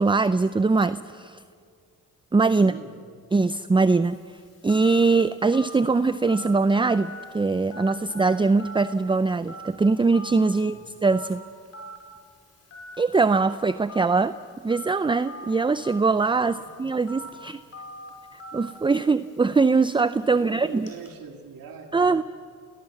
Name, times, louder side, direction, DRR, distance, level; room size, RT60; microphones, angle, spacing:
voice 1, 0.0-1.4 2.3-2.7 3.3-4.2 4.6-11.4 13.0-14.3 14.6-17.6 18.3-20.9 21.9-22.2, right 4 dB, 15° right, 14 dB, 0.5 m, -22 dB
voice 2, 2.5-3.0 10.5-10.9 16.4-16.7 17.5-17.6 18.9-19.1 20.3-22.2, right 6 dB, 80° right, 4 dB, 2.5 m, -43 dB
Telephone, 4.0-21.1, right 1 dB, 45° left, 5.1 m, -44 dB
29.5 x 18.5 x 7.3 m, 2.2 s
cardioid pair, 75°, 34 cm